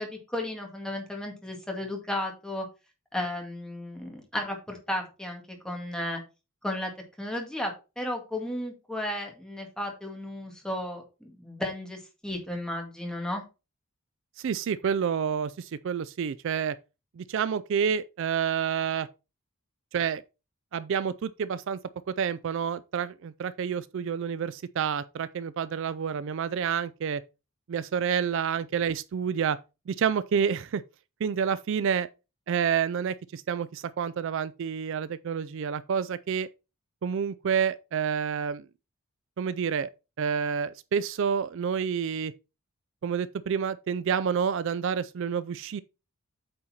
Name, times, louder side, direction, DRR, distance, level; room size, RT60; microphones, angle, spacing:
voice 1, 0.0-2.7 3.1-6.2 6.6-6.9 7.2-13.4, left 1 dB, 5° left, 1.9 m, -34 dB
voice 2, 14.4-16.8 17.2-19.1 19.9-20.2 20.7-21.8 22.1-27.2 27.7-29.6 29.9-30.8 31.2-32.1 32.5-36.5 37.0-38.6 39.4-39.9 40.2-42.3 43.0-45.8, right 7 dB, 60° right, 0.3 m, -29 dB
8.6 x 4.2 x 4.3 m
head